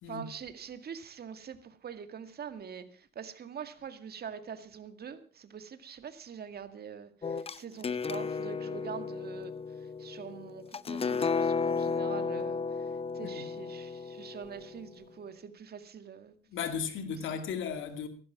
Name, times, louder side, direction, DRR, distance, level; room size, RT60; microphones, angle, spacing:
voice 1, 0.1-9.5 10.0-12.6 13.1-16.3, right 7 dB, 50° right, 2.0 m, -44 dB
sound 1, 7.2-14.9, left 5 dB, 30° left, 0.7 m, -34 dB
voice 2, 16.5-18.1, left 7 dB, 80° left, 2.3 m, -35 dB
15.0 x 12.0 x 5.9 m
cardioid pair, 90°, 20 cm